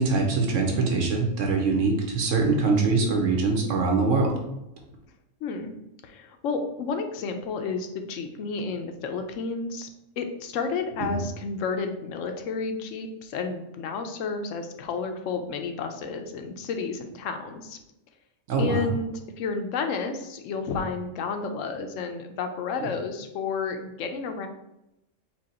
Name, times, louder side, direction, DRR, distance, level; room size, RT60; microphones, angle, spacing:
voice 1, 0.0-4.3 11.1-11.2 18.5-18.8 22.8-22.9, right 3 dB, 75° right, 1 dB, 1.2 m, -23 dB
voice 2, 5.4-5.7 6.0-9.9 10.2-17.8 18.6-24.5, left 4 dB, 90° left, 6 dB, 1.0 m, -31 dB
4.5 x 2.3 x 4.1 m, 0.88 s
omnidirectional pair, 1.3 m